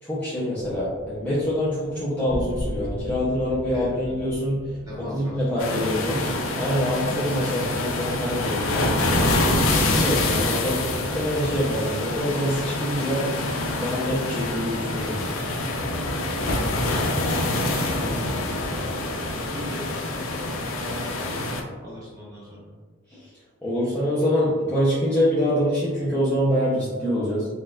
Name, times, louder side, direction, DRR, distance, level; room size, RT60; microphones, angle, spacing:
voice 1, 0.0-4.7 5.1-6.2 6.6-9.2 9.9-13.2 13.8-15.3 23.1-23.3 23.6-27.5, equal, 10° left, -10 dB, 0.5 m, -25 dB
sound 1, 0.6-7.4, equal, 50° left, 1.3 m, -38 dB
voice 2, 3.7-4.1 4.8-5.4 17.6-18.2 18.7-19.1 19.5-21.1 21.8-22.7, left 1 dB, 15° right, -7 dB, 1.0 m, -40 dB
sound 2, 5.6-21.6, left 2 dB, 70° left, 0.5 m, -26 dB
4.1 x 2.3 x 2.3 m, 1.5 s
head